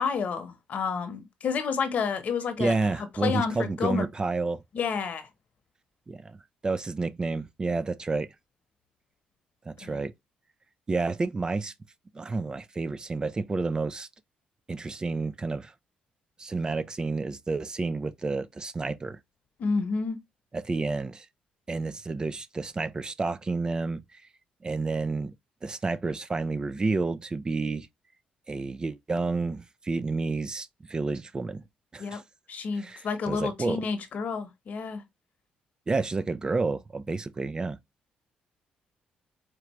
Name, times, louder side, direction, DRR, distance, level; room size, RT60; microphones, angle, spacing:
voice 1, 0.0-4.1 4.7-5.3 9.8-10.0 19.6-20.2 32.0-32.2 32.5-35.0, left 5 dB, 60° left, 1.0 m, -30 dB
voice 2, 2.6-4.6 6.1-6.4 6.6-8.3 9.7-10.1 10.9-11.7 12.1-14.1 14.7-15.7 16.4-19.2 20.5-21.3 21.7-24.2 24.6-25.3 25.6-27.9 28.5-31.6 31.9-32.2 32.8-33.8 35.9-37.8, right 3 dB, 30° right, 0.4 m, -30 dB
4.5 x 2.4 x 3.0 m
supercardioid pair, 75°, 3 cm